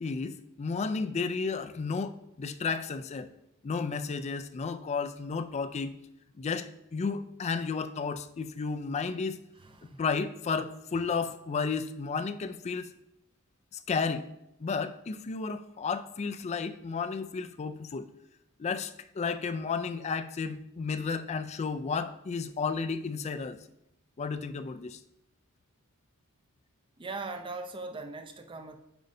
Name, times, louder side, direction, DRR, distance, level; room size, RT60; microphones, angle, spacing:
voice 1, 0.0-3.3 3.6-6.0 6.4-9.4 10.0-12.9 13.7-14.3 14.6-18.1 18.6-23.6 24.2-25.0, left 5 dB, 30° left, 10 dB, 0.3 m, -33 dB
voice 2, 9.6-10.0 27.0-28.8, right 3 dB, 25° right, 7 dB, 0.5 m, -40 dB
9.1 x 5.2 x 2.7 m, 0.84 s
head